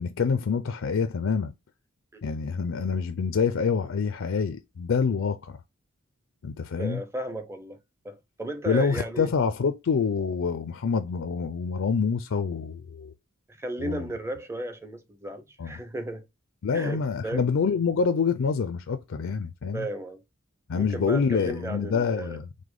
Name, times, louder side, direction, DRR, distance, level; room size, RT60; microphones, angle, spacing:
voice 1, 0.0-1.5 2.2-5.6 6.4-7.0 8.6-13.1 13.8-14.1 15.6-15.8 16.6-19.9 20.7-22.5, left 5 dB, 65° left, 0.4 m, -26 dB
voice 2, 6.8-7.8 8.0-9.3 13.5-16.2 16.7-17.5 19.7-20.2 20.7-22.4, right 1 dB, 15° right, 0.6 m, -35 dB
4.9 x 2.1 x 3.7 m
head